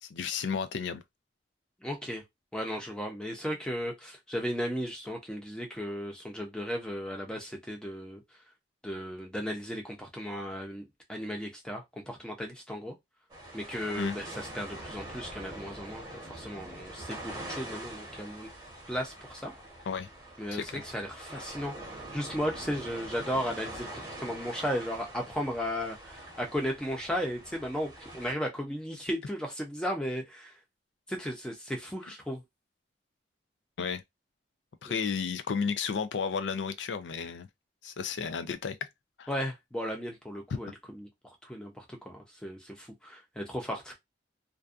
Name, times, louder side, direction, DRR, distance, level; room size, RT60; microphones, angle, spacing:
voice 1, 0.0-1.0 14.0-14.2 19.9-20.1 20.5-20.8 33.8-34.0 34.8-37.5 37.8-38.8 39.2-39.3, left 6 dB, 85° left, 0.4 m, -33 dB
voice 2, 1.8-2.2 2.5-8.2 8.8-12.9 13.5-18.5 18.9-19.5 20.4-30.5 31.1-32.4 34.9-35.0 39.3-41.1 41.4-43.9, equal, 5° left, 0.6 m, -35 dB
sound 1, 13.3-28.3, right 1 dB, 20° right, 0.9 m, -44 dB
2.6 x 2.2 x 2.4 m
head